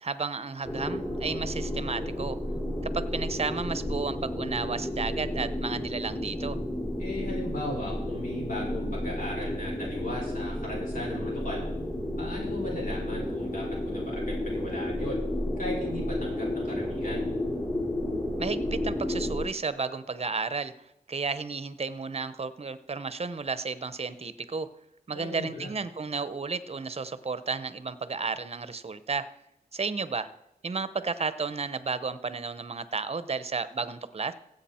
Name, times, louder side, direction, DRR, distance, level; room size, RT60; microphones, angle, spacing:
voice 1, 0.0-2.4 2.8-6.6 18.4-20.7 21.1-24.7 25.1-29.3 29.7-30.3 30.6-34.3, right 4 dB, 40° right, 14 dB, 0.8 m, -32 dB
sound 1, 0.6-19.4, left 1 dB, 25° left, 3.2 m, -32 dB
voice 2, 7.0-11.6 12.2-15.2 15.6-17.3 25.1-25.7, left 1 dB, 55° left, -3 dB, 5.3 m, -37 dB
16.0 x 8.0 x 4.4 m, 0.82 s
wide cardioid pair, 80°, 16 cm